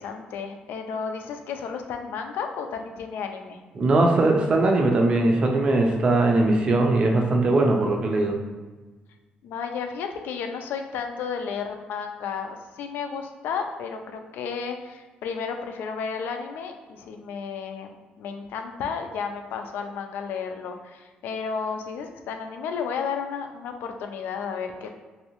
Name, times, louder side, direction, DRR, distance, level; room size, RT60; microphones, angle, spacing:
voice 1, 0.0-3.6 9.4-25.0, left 6 dB, 85° left, 5 dB, 0.4 m, -32 dB
voice 2, 3.8-8.3, right 2 dB, 30° right, 1 dB, 0.4 m, -20 dB
3.1 x 2.7 x 2.9 m, 1.3 s
cardioid pair, 175°, 3 cm